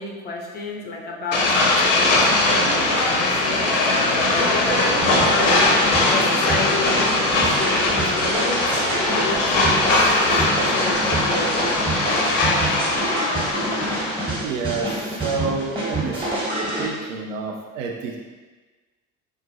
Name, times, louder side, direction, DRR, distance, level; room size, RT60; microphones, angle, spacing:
voice 1, 0.0-2.7 3.1-7.1 7.4-9.8 10.4-12.7, left 3 dB, 25° left, -1 dB, 0.4 m, -30 dB
sound 1, 1.3-14.4, left 2 dB, 70° left, 0.6 m, -20 dB
sound 2, 5.0-16.9, right 1 dB, 15° right, 0.9 m, -27 dB
voice 2, 14.4-16.2 16.8-18.2, right 4 dB, 70° right, 1 dB, 0.5 m, -28 dB
3.6 x 2.1 x 2.7 m, 1.3 s
figure-of-eight pair, 60°, 40 cm